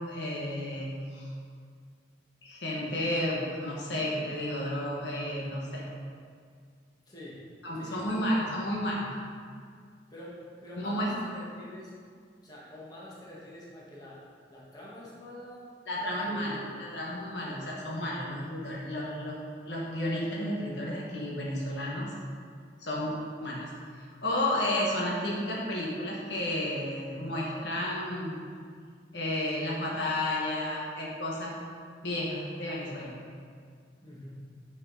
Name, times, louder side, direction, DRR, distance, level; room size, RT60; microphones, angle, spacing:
voice 1, 0.0-1.3 2.4-5.8 7.6-9.1 10.8-11.1 15.9-19.4 19.7-22.1 22.8-23.1 23.4-23.7 24.0-28.4 29.1-31.5 32.0-33.1, left 1 dB, 70° left, -4 dB, 1.5 m, -32 dB
voice 2, 7.1-7.4 7.7-8.7 10.1-11.9 12.4-14.2 14.5-15.7 16.0-16.7 17.5-17.7 34.0-34.4, equal, 20° left, -6 dB, 1.4 m, -46 dB
8.8 x 4.9 x 4.1 m, 2.1 s
head